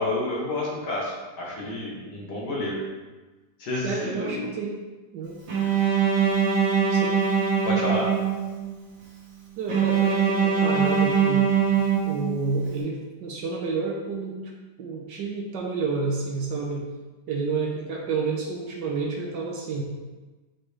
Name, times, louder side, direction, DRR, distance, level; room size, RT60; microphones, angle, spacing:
voice 1, 0.0-2.8 3.6-4.5 7.2-7.3 7.6-8.1, left 2 dB, 60° left, -3 dB, 1.7 m, -29 dB
voice 2, 3.8-4.8 5.1-5.4 6.9-7.2 9.6-11.5 12.1-14.4 14.8-16.9 17.3-19.8, right 4 dB, 65° right, -1 dB, 1.3 m, -30 dB
Bowed string instrument, 5.5-8.7 9.7-12.6, right 7 dB, 85° right, 2.5 m, -22 dB
6.3 x 4.6 x 3.2 m, 1.2 s
omnidirectional pair, 2.2 m